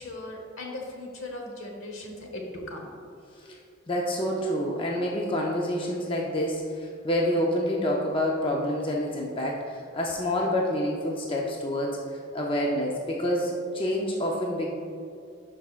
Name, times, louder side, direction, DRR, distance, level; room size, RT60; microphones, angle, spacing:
voice 1, 0.0-2.9 3.4-3.5, left 1 dB, 75° left, 1 dB, 1.2 m, -38 dB
voice 2, 3.9-12.0 12.3-14.7, left 1 dB, 25° left, -2 dB, 0.5 m, -27 dB
11.5 x 4.8 x 2.4 m, 2.5 s
head